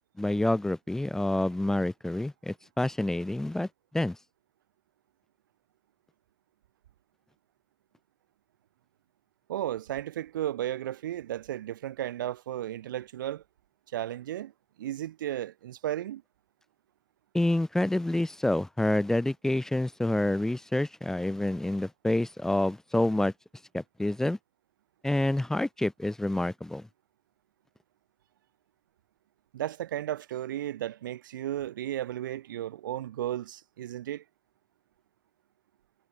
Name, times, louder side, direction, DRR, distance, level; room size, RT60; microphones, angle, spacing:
voice 1, 0.0-3.7 3.9-4.2 17.3-23.3 23.7-24.4 25.0-26.9, left 1 dB, 5° left, 0.5 m, -28 dB
voice 2, 9.5-13.4 13.9-14.5 14.8-16.2 29.5-34.2, right 12 dB, 70° right, 1.8 m, -34 dB
hypercardioid pair, 95°, 11 cm